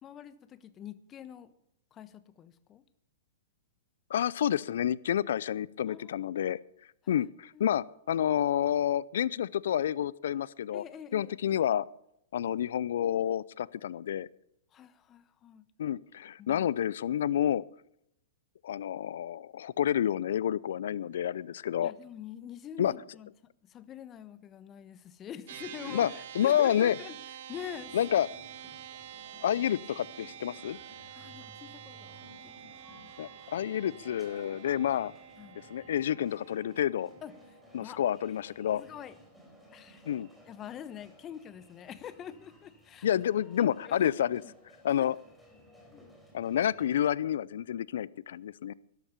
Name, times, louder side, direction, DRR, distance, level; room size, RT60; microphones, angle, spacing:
voice 1, 0.0-1.5 1.9-2.8 5.9-6.2 7.0-7.3 7.5-7.8 10.7-11.3 14.7-15.7 16.4-16.7 17.1-17.2 21.8-23.3 23.6-27.2 27.5-28.0 31.2-32.5 32.9-33.1 35.4-35.6 37.2-38.0 38.7-39.2 39.7-40.1 40.5-43.1 43.6-44.1 44.4-44.5 45.9-46.1, left 9 dB, 25° left, 14 dB, 1.1 m, -45 dB
voice 2, 4.1-6.6 7.1-10.8 11.1-11.8 12.3-14.3 15.8-17.6 18.6-21.9 22.8-22.9 25.9-26.9 27.9-28.3 29.4-30.8 33.2-35.1 35.7-37.1 37.7-38.8 40.1-40.3 43.0-44.4 44.8-45.2 46.3-48.7, left 10 dB, 70° left, 22 dB, 0.5 m, -29 dB
sound 1, 25.5-39.0, right 10 dB, 65° right, 1.8 m, -48 dB
sound 2, 27.5-47.0, left 1 dB, 5° left, 4.3 m, -57 dB
13.0 x 11.5 x 6.8 m, 0.77 s
hypercardioid pair, 120°, 0 cm